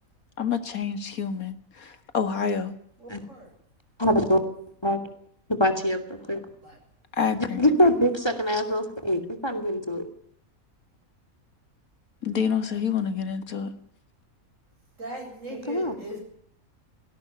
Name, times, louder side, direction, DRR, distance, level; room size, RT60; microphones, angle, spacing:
voice 1, 0.4-2.7 7.1-7.6 12.2-13.7, left 6 dB, 85° left, 2.3 m, -28 dB
voice 2, 3.0-3.5 6.6-6.8 7.8-8.4 15.0-16.2, right 1 dB, 65° right, 8.4 m, -40 dB
voice 3, 4.0-4.4 4.8-5.0 5.5-6.4 7.3-10.1 15.5-16.0, equal, 20° left, 2.7 m, -24 dB
20.0 x 17.5 x 9.8 m
omnidirectional pair, 1.5 m